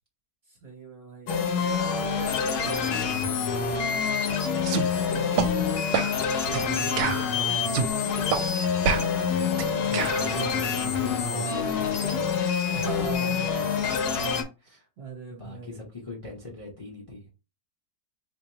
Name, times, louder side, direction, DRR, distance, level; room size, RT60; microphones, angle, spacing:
voice 1, 0.5-5.8 6.3-8.8 12.7-13.5 14.6-15.8, right 4 dB, 45° right, -1 dB, 1.0 m, -41 dB
sound 1, 1.3-14.4, left 6 dB, 70° left, 1.2 m, -26 dB
sound 2, 4.6-4.9 5.4-5.5 5.9-6.1 6.5-6.7 7.0-7.9 8.3-8.4 8.8-10.3, right 6 dB, 90° right, 1.3 m, -27 dB
voice 2, 9.8-12.3 12.6-14.2 14.6-14.9 15.3-17.3, left 3 dB, 30° left, -1 dB, 0.6 m, -40 dB
4.2 x 2.7 x 2.9 m, 0.30 s
omnidirectional pair, 1.8 m